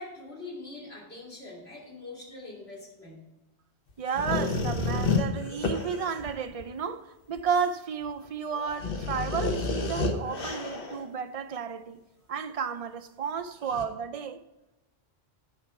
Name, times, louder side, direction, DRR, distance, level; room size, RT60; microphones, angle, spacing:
voice 1, 0.0-3.3, left 2 dB, 75° left, 3.1 m, -43 dB
voice 2, 4.0-12.0 12.3-14.4, right 6 dB, 45° right, 0.5 m, -32 dB
sound 1, 4.1-6.6 7.4-7.5 8.0-8.1 8.5-11.0 13.7-13.9, left 3 dB, 60° left, 1.1 m, -30 dB
10.5 x 4.7 x 5.9 m
omnidirectional pair, 1.1 m